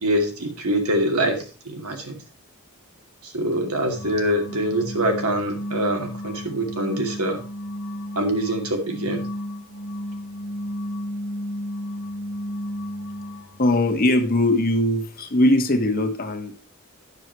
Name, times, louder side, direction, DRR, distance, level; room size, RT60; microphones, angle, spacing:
voice 1, 0.0-2.1 3.2-7.4 8.2-9.2, right 1 dB, 85° right, 3 dB, 2.5 m, -24 dB
sound 1, 3.9-13.6, equal, 85° left, 1.3 m, -33 dB
voice 2, 13.6-16.6, left 1 dB, 40° left, 6 dB, 1.4 m, -20 dB
9.8 x 7.4 x 4.6 m, 0.36 s
head